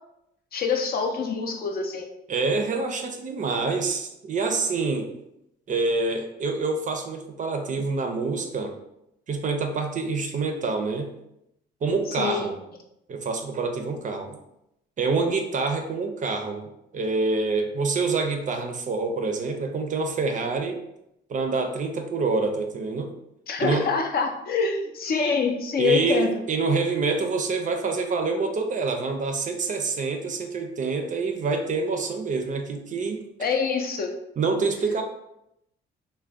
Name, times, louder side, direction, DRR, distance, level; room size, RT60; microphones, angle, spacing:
voice 1, 0.5-2.1 12.1-12.5 23.5-26.3 33.4-34.1, left 5 dB, 50° left, 4 dB, 0.5 m, -25 dB
voice 2, 2.3-5.1 5.7-8.7 9.3-11.1 11.8-12.6 13.1-14.4 15.0-20.8 21.3-23.1 23.6-23.9 25.8-33.2 34.4-35.0, right 4 dB, 40° right, 5 dB, 0.4 m, -26 dB
2.4 x 2.1 x 3.4 m, 0.83 s
cardioid pair, 90°, 20 cm